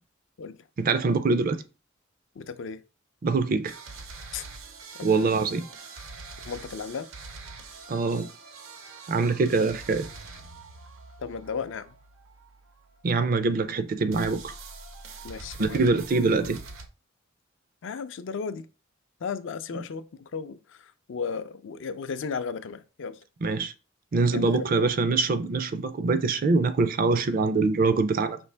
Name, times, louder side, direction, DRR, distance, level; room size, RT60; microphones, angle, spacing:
voice 1, 0.8-1.6 3.2-3.7 5.0-5.7 7.9-8.3 9.1-10.1 13.0-14.5 15.6-16.6 23.4-23.7 24.1-28.4, right 3 dB, 45° right, 0.4 m, -24 dB
voice 2, 2.4-2.8 4.3-4.4 5.0-5.4 6.4-7.1 11.2-12.0 15.2-15.8 17.8-18.7 19.2-23.2 24.3-24.8, left 5 dB, 65° left, 0.4 m, -35 dB
sound 1, 3.6-13.6 14.1-16.9, right 4 dB, 85° right, 0.7 m, -44 dB
5.3 x 2.8 x 3.3 m
head